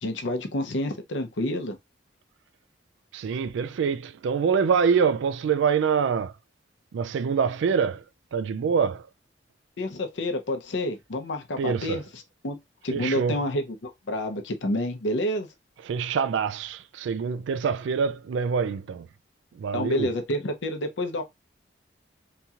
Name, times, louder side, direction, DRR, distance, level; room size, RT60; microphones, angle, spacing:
voice 1, 0.0-1.8 9.8-12.0 12.4-12.6 12.8-15.5 19.7-21.2, left 1 dB, 80° left, 0.7 m, -28 dB
voice 2, 3.1-6.3 6.9-8.0 8.3-9.1 11.6-12.0 12.9-13.4 15.8-19.1 19.5-20.1, right 6 dB, 80° right, 0.3 m, -25 dB
2.9 x 2.4 x 2.7 m
head